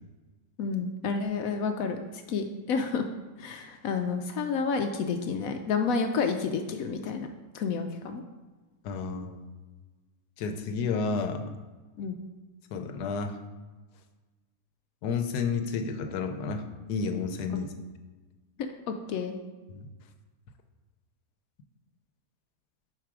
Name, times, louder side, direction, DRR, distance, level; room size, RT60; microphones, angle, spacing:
voice 1, 0.6-3.1 3.4-7.3 7.5-8.2 12.0-12.1 18.6-19.4, left 5 dB, 70° left, 6 dB, 0.9 m, -30 dB
voice 2, 8.8-9.4 10.4-11.5 12.7-13.4 15.0-17.7 19.7-19.9, left 5 dB, 90° left, 7 dB, 1.3 m, -31 dB
4.8 x 4.6 x 6.0 m, 1.3 s
omnidirectional pair, 1.7 m